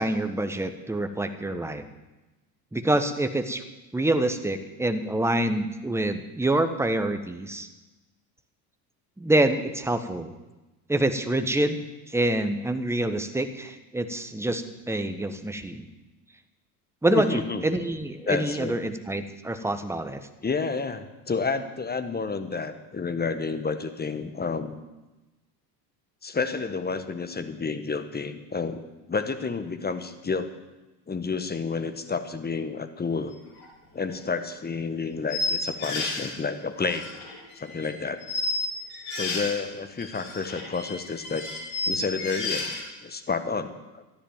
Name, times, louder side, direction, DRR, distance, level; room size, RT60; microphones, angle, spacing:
voice 1, 0.0-1.9 2.7-3.6 3.9-7.7 9.2-10.3 10.9-15.9 17.0-20.3, right 1 dB, 5° right, 8 dB, 1.3 m, -26 dB
voice 2, 17.1-17.7 18.3-18.7 20.4-24.7 26.2-28.8 29.1-30.5 31.1-33.4 33.9-37.1 37.5-38.2 39.1-41.5 41.9-42.7 43.0-44.0, left 4 dB, 20° left, 10 dB, 1.5 m, -30 dB
sound 1, 33.6-33.7 34.1-34.2 35.3-36.3 36.8-37.9 38.2-39.6 40.0-42.8, left 3 dB, 70° left, 6.4 m, -31 dB
13.5 x 10.5 x 7.4 m, 1.1 s
hypercardioid pair, 75°, 50 cm